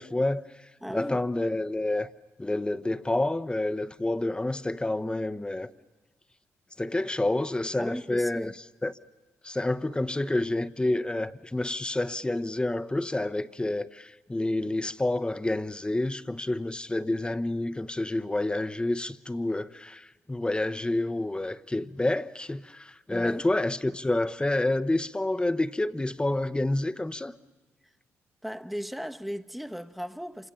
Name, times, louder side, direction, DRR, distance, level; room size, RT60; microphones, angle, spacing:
voice 1, 0.0-2.1 2.4-5.7 6.8-8.5 8.8-8.9 9.4-27.4, left 2 dB, 15° left, 1.0 m, -29 dB
voice 2, 0.8-1.2 7.8-8.5 23.1-23.5 28.4-30.5, equal, ahead, 1.1 m, -36 dB
27.0 x 25.5 x 7.0 m
supercardioid pair, 55°, 6 cm